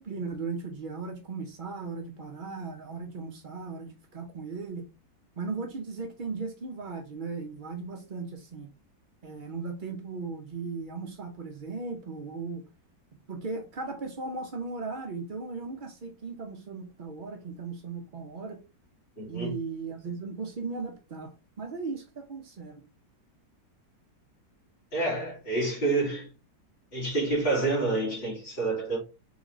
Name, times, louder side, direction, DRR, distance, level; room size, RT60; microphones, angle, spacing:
voice 1, 0.0-4.9 5.3-8.7 9.2-12.7 13.3-18.6 19.3-22.8, right 4 dB, 55° right, 0.5 m, -37 dB
voice 2, 19.2-19.6 24.9-26.3 26.9-29.0, right 3 dB, 30° left, 2.6 m, -28 dB
4.2 x 3.9 x 3.0 m
omnidirectional pair, 1.9 m